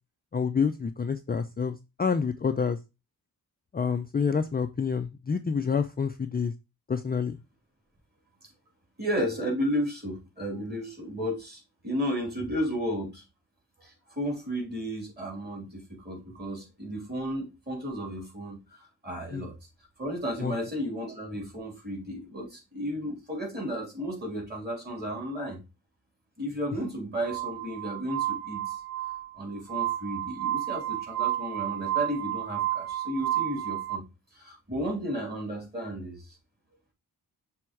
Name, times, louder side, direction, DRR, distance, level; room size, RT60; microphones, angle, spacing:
voice 1, 0.3-2.8 3.7-6.5 6.9-7.4 19.3-19.5 20.4-20.5 26.7-26.8, left 6 dB, 25° left, 0.4 m, -28 dB
voice 2, 9.0-13.2 13.8-19.6 20.0-25.6 26.4-28.8 29.4-34.0 34.3-36.4, equal, 25° right, 3.3 m, -33 dB
Glass, 27.2-34.0, right 14 dB, 70° right, 0.8 m, -31 dB
6.2 x 3.5 x 4.5 m
wide cardioid pair, 125°, 38 cm